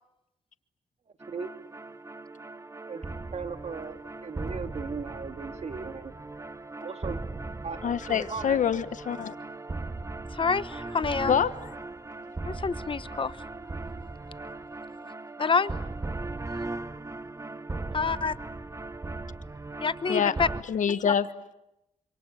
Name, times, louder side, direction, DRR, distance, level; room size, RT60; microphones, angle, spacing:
sound 1, 1.2-20.6, right 3 dB, 20° right, 1.1 m, -38 dB
voice 1, 2.9-6.1 6.8-7.2 7.6-7.8 8.1-8.6, right 5 dB, 55° right, 7 dB, 2.4 m, -37 dB
voice 2, 7.8-9.3 11.3-11.5 20.1-20.3 20.7-21.3, left 8 dB, 70° left, 13 dB, 1.3 m, -25 dB
voice 3, 10.3-11.3 12.4-13.4 15.4-15.7 17.9-18.3 19.8-20.5, left 5 dB, 40° left, 15 dB, 1.0 m, -27 dB
28.0 x 26.5 x 7.8 m, 0.89 s
cardioid pair, 80°, 13 cm